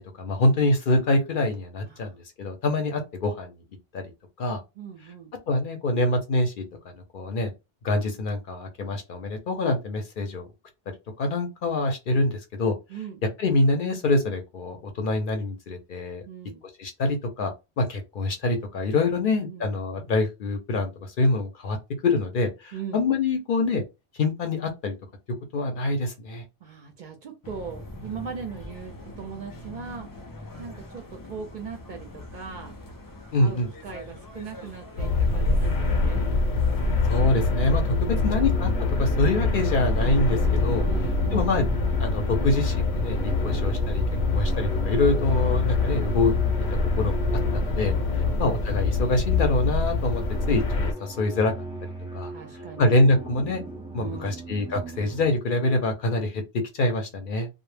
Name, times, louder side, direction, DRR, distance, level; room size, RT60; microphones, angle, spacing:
voice 1, 0.0-3.5 3.9-4.0 4.4-4.6 5.5-6.6 7.1-7.5 7.8-10.4 11.2-12.7 13.4-16.2 16.8-17.5 17.8-20.9 21.2-21.8 22.0-23.8 24.2-24.9 25.5-26.4 33.3-33.7 37.1-38.7 39.0-40.8 41.3-41.7 42.0-43.2 43.4-44.0 44.3-46.3 47.0-47.2 47.5-47.9 48.4-50.2 50.5-50.6 51.0-51.5 52.1-52.3 52.8-53.6 53.9-57.5, left 2 dB, 60° left, 0.7 m, -25 dB
voice 2, 4.8-5.3 12.9-13.2 16.3-16.6 19.2-19.7 22.7-23.0 26.6-30.1 30.6-32.7 33.4-36.2 37.9-38.5 40.9-41.4 47.5-48.4 52.3-53.0 54.0-54.4, right 6 dB, 55° right, 0.6 m, -39 dB
sound 1, 27.4-37.2, left 1 dB, 35° left, 0.3 m, -43 dB
sound 2, 35.0-50.9, left 3 dB, 85° left, 1.0 m, -24 dB
sound 3, 38.2-48.2 48.8-55.3, right 2 dB, 5° right, 0.7 m, -38 dB
2.1 x 2.0 x 3.2 m
omnidirectional pair, 1.1 m